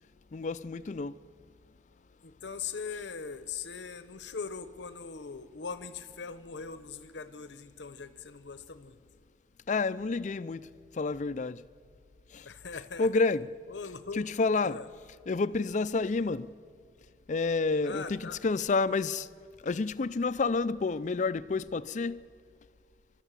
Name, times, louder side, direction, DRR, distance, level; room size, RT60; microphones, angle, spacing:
voice 1, 0.3-1.2 9.7-10.7 10.9-11.6 12.3-12.5 13.0-13.5 14.1-14.8 15.3-16.5 17.3-19.3 19.6-22.2, left 3 dB, 40° left, 0.4 m, -29 dB
voice 2, 2.2-9.0 12.4-13.1 13.7-14.3 14.6-14.9 17.8-18.4, left 5 dB, 80° left, 0.8 m, -41 dB
29.5 x 12.5 x 7.4 m
head